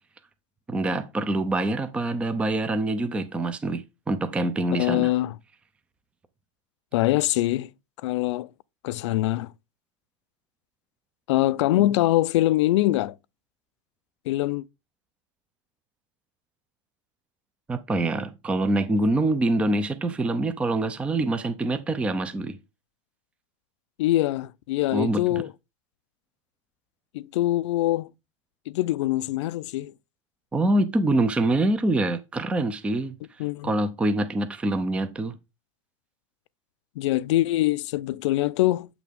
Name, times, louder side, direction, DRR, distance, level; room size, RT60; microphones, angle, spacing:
voice 1, 0.7-5.1 11.8-11.9 17.7-22.6 24.9-25.2 30.5-33.1 33.6-35.3, right 2 dB, 5° right, 0.5 m, -25 dB
voice 2, 4.7-5.3 6.9-7.7 8.0-8.5 8.8-9.5 11.3-13.2 14.3-14.6 24.0-25.5 27.1-28.1 28.7-29.9 33.4-33.7 37.0-38.9, left 16 dB, 65° left, 0.5 m, -23 dB
8.2 x 6.0 x 3.5 m
supercardioid pair, 160°, 16 cm